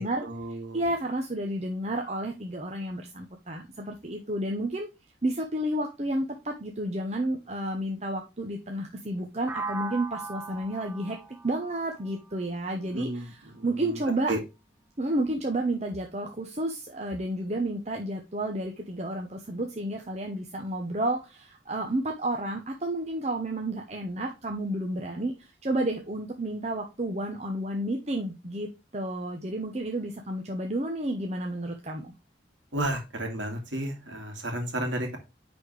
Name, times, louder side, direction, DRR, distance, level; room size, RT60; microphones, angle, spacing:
voice 1, 0.0-0.8 12.9-14.0 14.3-14.4 32.7-35.2, right 1 dB, 90° right, 3 dB, 2.3 m, -33 dB
voice 2, 0.7-4.9 5.2-11.2 11.4-14.3 15.0-32.1, right 1 dB, 35° right, 2 dB, 0.9 m, -31 dB
sound 1, 9.5-13.4, right 4 dB, 10° right, 0.4 m, -39 dB
9.7 x 4.2 x 3.3 m, 0.26 s
head